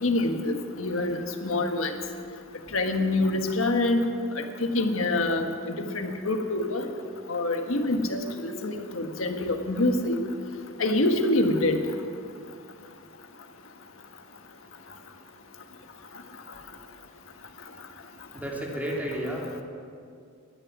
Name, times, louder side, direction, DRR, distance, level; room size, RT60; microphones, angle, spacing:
voice 1, 0.0-1.9 2.7-4.0 4.3-6.9 7.3-10.2 10.8-11.8, left 2 dB, 85° left, 5 dB, 1.5 m, -26 dB
voice 2, 18.3-19.6, right 1 dB, 10° right, -2 dB, 2.8 m, -32 dB
19.0 x 12.0 x 6.1 m, 2.4 s
head